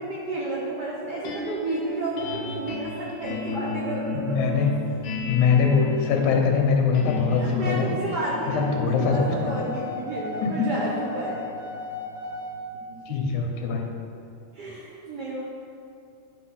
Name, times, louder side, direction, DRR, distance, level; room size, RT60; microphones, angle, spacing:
voice 1, 0.0-4.4 7.4-11.5 12.9-13.0 13.2-13.3 13.7-13.8 14.5-15.4, right 2 dB, 75° right, -5 dB, 0.9 m, -31 dB
sound 1, 1.2-13.5, left 3 dB, 55° left, 1.6 m, -35 dB
voice 2, 4.1-4.7 5.3-7.9 8.5-9.5 10.4-10.7 13.1-13.9, left 5 dB, 75° left, 2 dB, 2.4 m, -22 dB
sound 2, 8.6-12.5, left 3 dB, 10° left, 1.8 m, -35 dB
10.5 x 4.7 x 5.8 m, 2.5 s
omnidirectional pair, 3.5 m